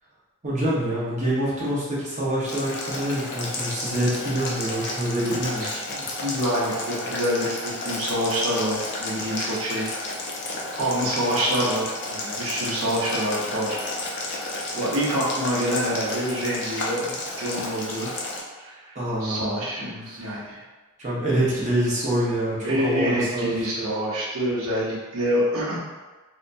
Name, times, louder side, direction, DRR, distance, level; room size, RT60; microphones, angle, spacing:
voice 1, 0.4-5.8 18.9-19.6 20.0-20.3 21.0-23.9, right 1 dB, 35° right, -7 dB, 0.8 m, -26 dB
Boiling, 2.4-18.4, left 2 dB, 55° left, 0.5 m, -32 dB
voice 2, 5.9-9.9 10.8-13.8 14.7-18.1 18.6-18.9 19.2-20.6 22.6-25.8, equal, 65° right, -7 dB, 0.8 m, -26 dB
2.8 x 2.2 x 2.5 m, 1.2 s
head